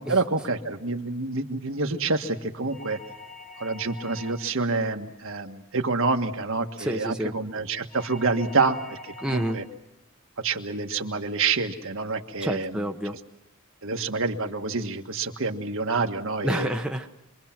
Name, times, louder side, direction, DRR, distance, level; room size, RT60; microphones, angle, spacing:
voice 1, 0.0-3.0 3.6-9.6 10.4-12.8 13.8-16.7, right 3 dB, 65° right, 5 dB, 1.6 m, -27 dB
sound 1, 2.7-4.6 7.9-9.7, left 2 dB, 35° left, 1.9 m, -44 dB
voice 2, 6.8-7.4 9.2-9.6 12.4-13.1 16.4-17.1, right 1 dB, 5° right, 2 dB, 1.1 m, -28 dB
26.5 x 23.5 x 6.0 m, 0.96 s
head